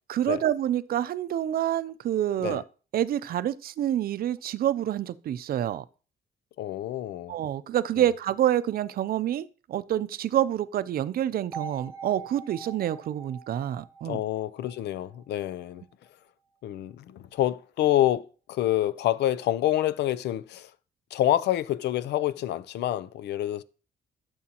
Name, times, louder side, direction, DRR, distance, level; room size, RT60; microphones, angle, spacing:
voice 1, 0.1-2.6 2.9-5.8 7.3-14.2, right 11 dB, 60° right, 0.5 m, -27 dB
voice 2, 6.6-7.4 8.0-8.1 14.1-15.8 16.6-20.7 21.1-23.6, left 13 dB, 90° left, 0.5 m, -27 dB
sound 1, 11.5-15.5, right 6 dB, 15° right, 1.3 m, -43 dB
12.5 x 7.1 x 2.9 m
cardioid pair, 135°, 17 cm